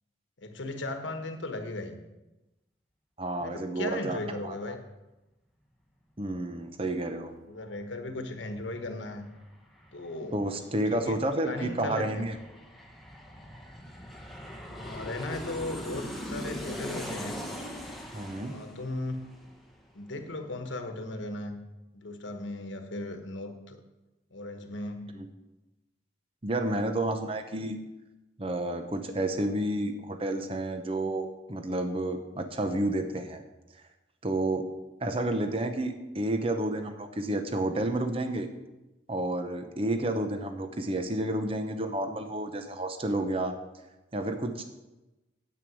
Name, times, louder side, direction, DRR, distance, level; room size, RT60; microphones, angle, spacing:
voice 1, 0.4-2.0 3.4-4.8 7.5-9.3 9.9-10.4 10.9-12.3 14.7-17.4 18.3-19.2 19.9-21.6 21.9-23.8 24.3-25.2, left 2 dB, 80° left, 7 dB, 1.2 m, -37 dB
voice 2, 3.2-4.8 6.2-7.3 10.3-12.3 18.1-18.5 25.1-25.3 26.4-27.8 28.4-33.4 34.2-34.6 35.0-38.5 39.1-43.5 44.1-44.6, right 1 dB, 30° right, 7 dB, 0.8 m, -30 dB
Aircraft, 8.5-8.6 8.9-20.2 20.5-20.6, equal, ahead, 1.1 m, -41 dB
9.5 x 8.8 x 6.3 m, 1.0 s
head